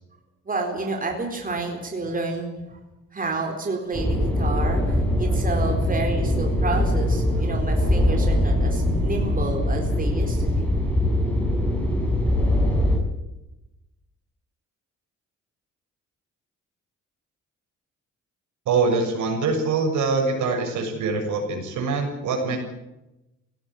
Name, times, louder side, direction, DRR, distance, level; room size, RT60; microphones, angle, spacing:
voice 1, 0.5-2.8 3.1-10.7, right 3 dB, 30° right, 2 dB, 4.1 m, -30 dB
sound 1, 3.9-13.0, left 1 dB, 5° left, 6.6 m, -22 dB
voice 2, 18.7-22.6, right 4 dB, 75° right, 3 dB, 6.9 m, -24 dB
17.5 x 17.0 x 9.6 m, 0.95 s
cardioid pair, 90°, 30 cm